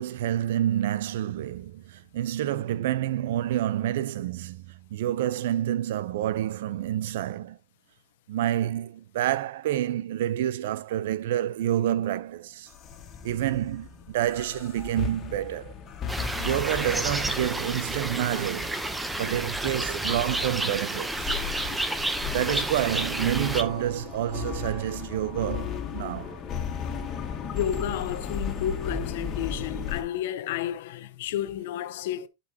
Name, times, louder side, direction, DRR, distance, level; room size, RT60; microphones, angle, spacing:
voice 1, 0.0-7.6 8.3-12.7 13.2-15.7 16.4-18.8 19.2-21.4 21.8-21.9 22.3-26.4, right 12 dB, 75° right, 0.6 m, -28 dB
sound 1, 12.7-30.0, left 6 dB, 30° left, 1.9 m, -36 dB
sound 2, 16.1-23.6, right 2 dB, 5° right, 0.8 m, -30 dB
voice 2, 27.4-32.3, left 11 dB, 70° left, 0.8 m, -31 dB
11.5 x 5.4 x 2.8 m
supercardioid pair, 135°, 0 cm